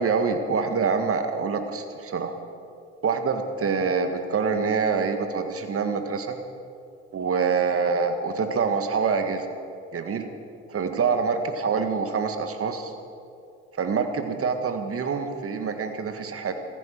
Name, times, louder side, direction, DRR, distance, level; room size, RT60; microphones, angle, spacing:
voice 1, 0.0-2.3 3.0-6.4 7.1-9.5 9.9-10.3 10.7-12.9 13.8-16.5, right 5 dB, 40° right, 7 dB, 2.0 m, -25 dB
15.5 x 15.0 x 6.1 m, 2.5 s
hypercardioid pair, 55°, 34 cm